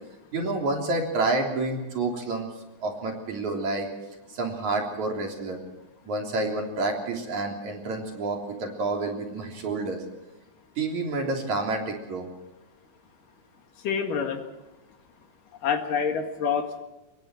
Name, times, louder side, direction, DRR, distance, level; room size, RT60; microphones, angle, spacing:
voice 1, 0.3-2.5 2.8-3.9 4.3-5.6 6.0-10.0 10.8-12.3, right 2 dB, 55° right, 1 dB, 4.7 m, -29 dB
voice 2, 13.8-14.4 15.6-16.8, left 6 dB, 70° left, 5 dB, 3.5 m, -27 dB
26.5 x 22.0 x 4.5 m, 1.0 s
omnidirectional pair, 4.1 m